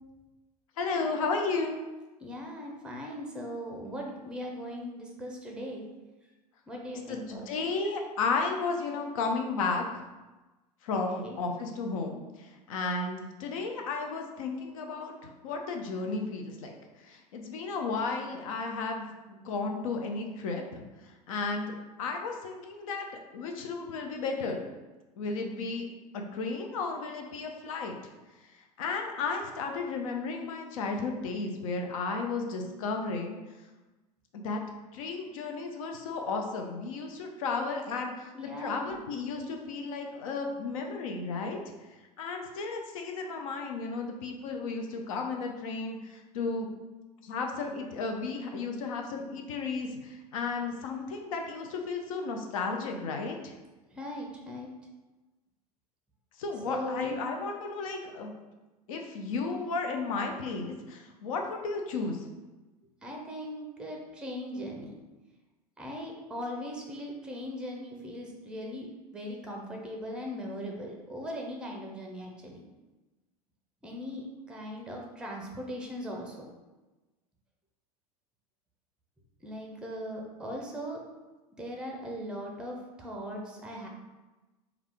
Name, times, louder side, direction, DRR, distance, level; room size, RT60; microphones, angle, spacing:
voice 1, 0.8-1.8 7.1-10.0 10.8-21.7 22.0-24.6 25.2-25.9 26.1-28.0 28.8-33.4 34.3-34.6 34.9-41.6 42.2-46.7 47.2-53.5 56.4-58.3 58.9-62.2, left 4 dB, 60° left, 3 dB, 0.5 m, -33 dB
voice 2, 2.2-5.8 6.7-7.5 10.9-11.4 38.3-39.0 53.9-54.7 56.6-57.2 63.0-64.9 65.8-68.9 69.1-72.6 73.8-76.5 79.4-81.0 81.5-83.9, equal, 5° right, 0 dB, 0.6 m, -39 dB
3.5 x 2.3 x 3.4 m, 1.1 s
figure-of-eight pair, 80°, 20 cm